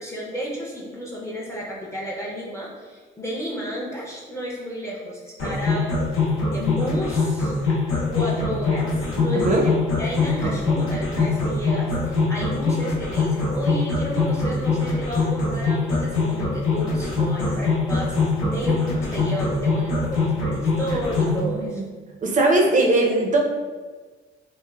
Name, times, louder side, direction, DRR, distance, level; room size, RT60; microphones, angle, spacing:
voice 1, 0.0-9.7 10.0-18.2 18.5-21.8, equal, 15° left, -4 dB, 0.5 m, -32 dB
sound 1, 5.4-21.4, left 3 dB, 85° left, 0.7 m, -23 dB
voice 2, 21.2-21.8 22.2-23.4, right 2 dB, 40° right, 0 dB, 0.5 m, -20 dB
3.0 x 2.0 x 2.2 m, 1.4 s
cardioid pair, 90°, 20 cm